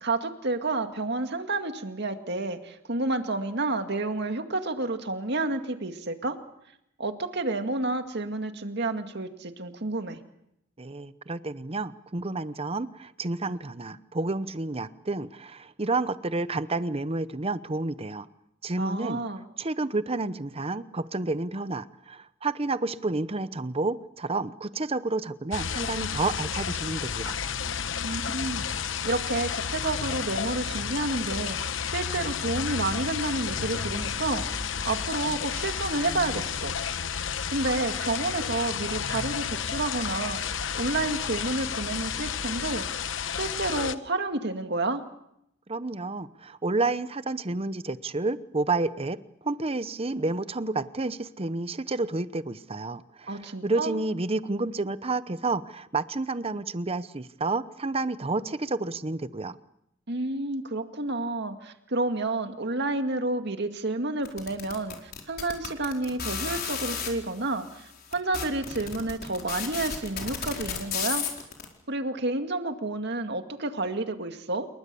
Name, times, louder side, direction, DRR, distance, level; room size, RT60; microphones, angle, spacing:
voice 1, 0.0-6.4 7.0-10.2 18.8-19.4 28.0-28.8 29.0-34.5 34.8-36.7 37.5-42.9 43.4-45.0 53.3-53.9 60.1-71.3 71.9-74.7, right 2 dB, 60° right, 6 dB, 2.2 m, -30 dB
voice 2, 10.8-18.3 18.6-19.2 19.6-27.4 45.7-59.6, right 3 dB, 30° right, 14 dB, 0.9 m, -30 dB
sound 1, 25.5-44.0, left 7 dB, 70° left, 1.0 m, -31 dB
sound 2, 33.8-38.0, equal, 5° right, 2.1 m, -45 dB
sound 3, 64.3-67.1 67.8-67.9 68.1-71.6, left 6 dB, 50° left, 4.6 m, -32 dB
28.5 x 22.5 x 7.0 m, 0.80 s
head